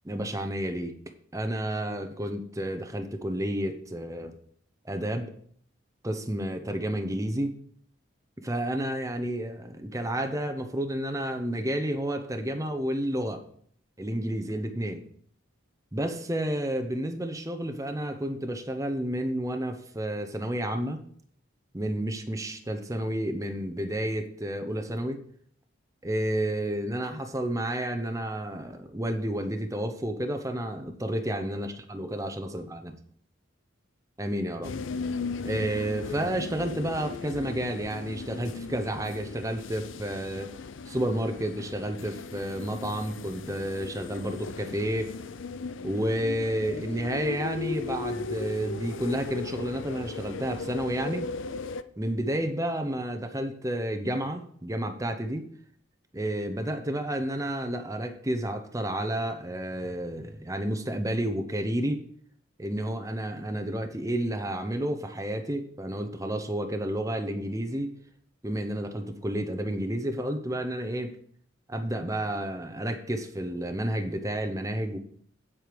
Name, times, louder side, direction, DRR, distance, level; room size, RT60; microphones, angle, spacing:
voice 1, 0.1-0.9 1.3-4.3 4.8-5.3 6.0-7.5 8.4-13.4 14.0-15.0 15.9-21.0 21.7-25.2 26.0-32.9 34.2-34.7 35.4-40.5 40.9-45.1 45.8-51.3 52.0-55.5 56.1-62.0 62.6-67.9 68.4-71.2 71.7-75.0, right 1 dB, 15° right, 7 dB, 0.8 m, -31 dB
sound 1, 34.6-51.8, left 4 dB, 70° left, 0.5 m, -37 dB
8.6 x 7.9 x 5.2 m, 0.62 s
head